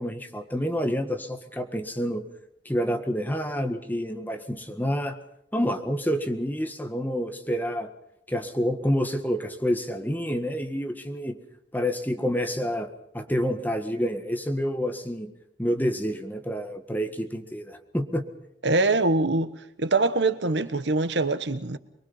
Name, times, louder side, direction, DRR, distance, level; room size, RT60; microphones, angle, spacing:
voice 1, 0.0-2.2 2.7-5.2 5.5-7.9 8.3-11.4 11.7-12.9 13.1-15.3 15.6-18.2, equal, 10° left, 1.7 m, -28 dB
voice 2, 18.6-19.5 19.8-21.8, right 2 dB, 80° right, 1.3 m, -23 dB
24.0 x 22.5 x 5.7 m
head